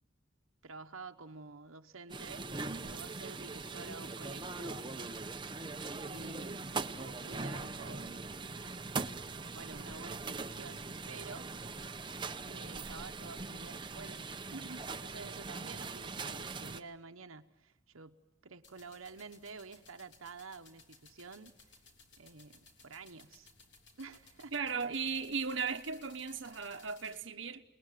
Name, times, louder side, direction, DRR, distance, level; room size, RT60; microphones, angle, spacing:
voice 1, 0.6-4.8 5.9-8.3 9.4-11.5 12.5-14.3 14.5-21.5 22.2-23.5 24.0-24.5, right 4 dB, 85° right, 1.1 m, -50 dB
sound 1, 2.1-16.8, right 3 dB, 25° right, 0.8 m, -41 dB
sound 2, 18.6-27.2, left 4 dB, 55° left, 3.4 m, -61 dB
voice 2, 24.5-27.6, right 5 dB, 65° right, 1.1 m, -36 dB
29.0 x 20.5 x 9.2 m
head